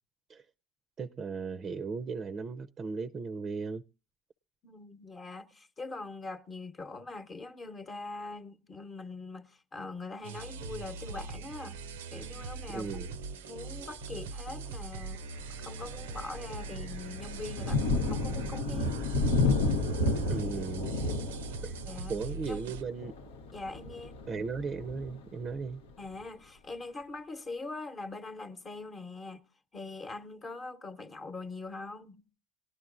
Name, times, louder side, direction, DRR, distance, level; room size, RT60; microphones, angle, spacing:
voice 1, 1.0-3.8 12.7-13.1 20.3-21.0 21.6-21.8 22.1-23.1 24.3-25.8, right 5 dB, 35° right, 0.5 m, -36 dB
voice 2, 4.6-11.8 12.1-12.9 13.5-15.2 15.6-19.0 21.8-22.2 22.5-22.6 23.5-24.2 26.0-29.4 29.7-32.2, left 3 dB, 35° left, 1.0 m, -42 dB
sound 1, 10.2-22.8, right 4 dB, 85° right, 0.6 m, -41 dB
Thunder, 13.8-14.2 14.7-14.9 15.3-25.9, left 2 dB, 85° left, 0.8 m, -32 dB
18.5 x 11.5 x 2.4 m
hypercardioid pair, 75°, 0 cm